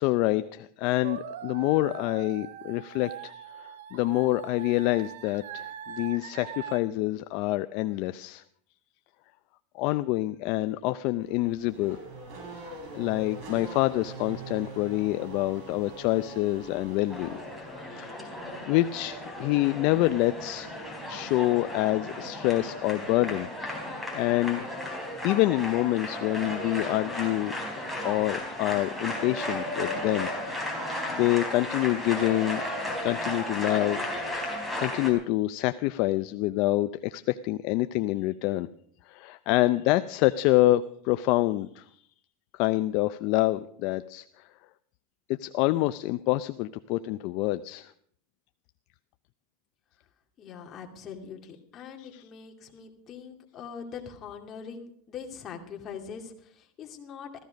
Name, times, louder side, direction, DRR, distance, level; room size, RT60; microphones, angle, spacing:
voice 1, 0.0-8.4 9.7-12.0 12.9-17.4 17.9-20.7 21.1-23.5 23.8-24.7 25.2-27.5 28.0-30.3 30.7-30.8 31.1-32.6 33.0-38.7 39.1-42.0 42.5-44.5 45.3-47.9 52.0-52.2, left 17 dB, 50° left, 12 dB, 0.5 m, -27 dB
sound 1, 1.0-6.8, right 9 dB, 85° right, 1.1 m, -42 dB
Race car auto racing / Accelerating revving vroom, 11.2-17.9, right 2 dB, 50° right, 6.4 m, -43 dB
sound 2, 17.1-35.1, left 1 dB, 5° right, 4.1 m, -34 dB
voice 2, 50.4-57.4, left 6 dB, 30° left, 3 dB, 2.4 m, -42 dB
15.5 x 14.5 x 5.2 m, 0.63 s
supercardioid pair, 145°, 0 cm